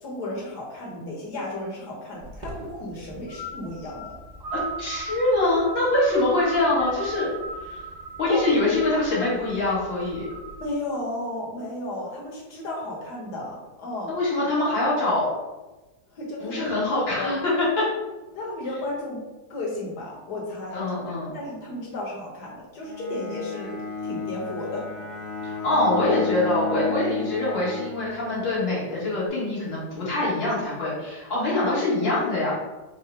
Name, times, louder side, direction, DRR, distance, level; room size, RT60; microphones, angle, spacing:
voice 1, 0.0-4.2 8.3-8.7 10.6-14.2 16.1-16.8 17.2-17.4 18.3-24.9, left 1 dB, 60° left, -3 dB, 1.6 m, -34 dB
sound 1, 2.2-10.7, right 3 dB, 45° right, 0.5 m, -38 dB
voice 2, 4.5-7.3 7.6-7.8 8.2-10.3 14.1-15.3 16.4-17.9 20.7-21.3 25.4-32.5, left 2 dB, 90° left, -8 dB, 2.4 m, -24 dB
Bowed string instrument, 22.8-28.6, left 4 dB, 35° left, 0.5 m, -32 dB
4.7 x 2.1 x 4.5 m, 1.1 s
omnidirectional pair, 2.0 m